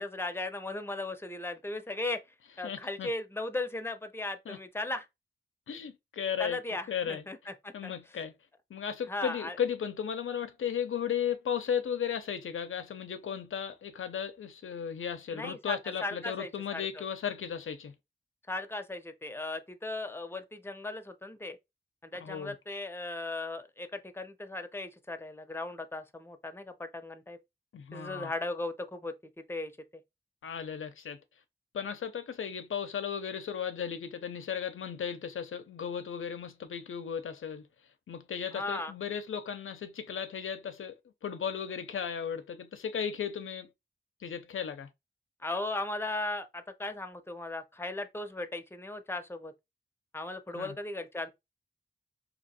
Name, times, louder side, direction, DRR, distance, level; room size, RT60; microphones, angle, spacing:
voice 1, 0.0-2.2 2.6-5.1 6.4-7.9 9.1-9.6 15.3-17.0 18.5-21.6 22.0-27.4 27.9-29.7 38.5-38.9 45.4-49.5 50.1-51.3, left 2 dB, 10° left, 0.7 m, -37 dB
voice 2, 2.6-3.1 4.5-4.6 5.7-6.6 6.9-7.2 7.7-8.3 8.7-17.9 22.2-22.5 27.7-28.3 30.4-31.2 31.7-37.6 38.1-40.9 41.2-43.7 44.2-44.9 50.5-50.7, left 8 dB, 90° left, 0.5 m, -35 dB
2.8 x 2.5 x 4.1 m
cardioid pair, 55°, 20 cm